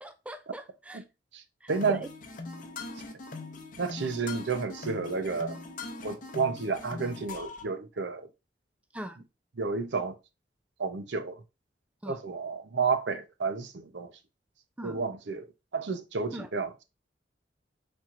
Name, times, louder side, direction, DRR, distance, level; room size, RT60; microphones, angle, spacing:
voice 1, 0.0-1.0 1.6-2.1 8.9-9.2 12.0-12.2 14.8-14.9 16.3-16.5, equal, 5° right, 0.3 m, -39 dB
sound 1, 1.7-7.6, left 3 dB, 45° left, 0.7 m, -41 dB
voice 2, 1.7-2.0 3.8-5.6 6.0-8.3 9.6-10.2 10.8-11.4 12.1-14.1 14.8-15.5 15.7-16.8, right 4 dB, 75° right, 0.6 m, -31 dB
4.4 x 4.3 x 2.4 m
head